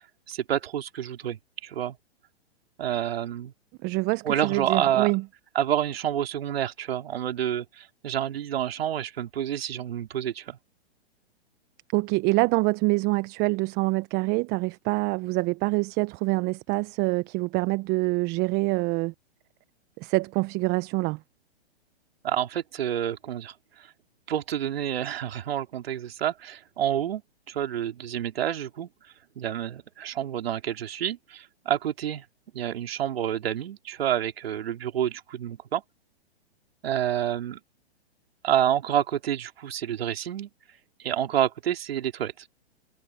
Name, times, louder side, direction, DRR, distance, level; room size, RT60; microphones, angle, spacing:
voice 1, 0.3-2.0 2.8-3.5 4.2-5.1 5.6-10.6 22.2-23.9 24.3-27.2 27.5-28.9 29.4-32.3 32.5-35.8 36.8-37.6 38.4-40.5 41.0-42.5, right 10 dB, 65° right, 3.5 m, -28 dB
voice 2, 3.8-5.2 11.9-19.1 20.0-21.2, right 24 dB, 30° right, 1.1 m, -25 dB
hypercardioid pair, 120°, 32 cm